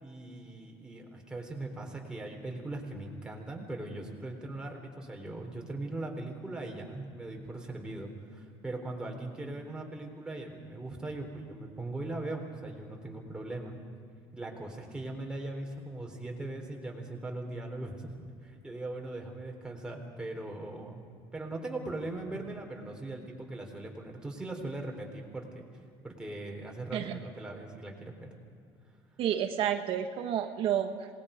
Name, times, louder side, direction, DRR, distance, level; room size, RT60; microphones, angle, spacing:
voice 1, 0.0-13.8 14.3-18.1 18.4-21.0 21.3-25.6 26.0-28.3, right 2 dB, 10° right, 0 dB, 3.7 m, -40 dB
voice 2, 29.2-31.1, right 10 dB, 60° right, 6 dB, 1.3 m, -30 dB
27.0 x 20.0 x 5.1 m, 2.4 s
cardioid pair, 130°, 11 cm